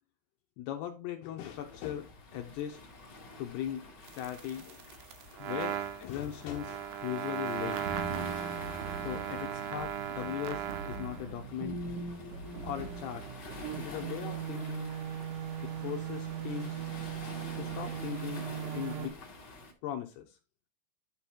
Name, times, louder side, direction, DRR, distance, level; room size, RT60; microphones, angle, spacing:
voice 1, 0.6-2.8 3.4-3.8 4.1-4.8 5.3-7.9 9.0-11.8 12.6-13.3 13.8-14.9 15.6-16.8 17.2-18.4 18.7-19.2 19.8-20.4, left 11 dB, 75° left, 2.5 m, -39 dB
Waves surf, 1.4-19.7, left 2 dB, 45° left, 1.3 m, -49 dB
sound 1, 4.1-11.3 12.5-19.1, right 9 dB, 85° right, 2.0 m, -38 dB
sound 2, 7.5-14.0, right 2 dB, 55° right, 1.4 m, -42 dB
11.0 x 3.7 x 4.5 m
omnidirectional pair, 5.3 m